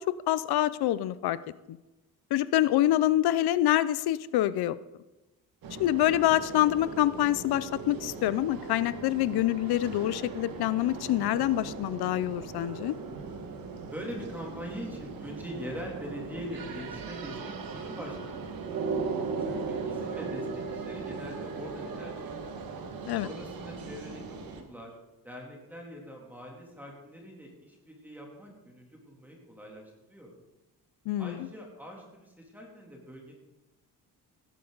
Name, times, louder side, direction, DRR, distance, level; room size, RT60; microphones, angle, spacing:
voice 1, 0.1-1.4 2.3-4.8 5.7-12.9 23.1-23.3 31.1-31.4, left 13 dB, 80° left, 17 dB, 0.7 m, -26 dB
sound 1, 5.6-24.6, right 4 dB, 65° right, 1.9 m, -38 dB
voice 2, 13.8-18.8 19.5-22.4 23.2-25.0 25.2-30.3 31.2-33.3, equal, 5° right, -1 dB, 3.0 m, -43 dB
16.5 x 11.5 x 4.0 m, 1.1 s
cardioid pair, 140°, 38 cm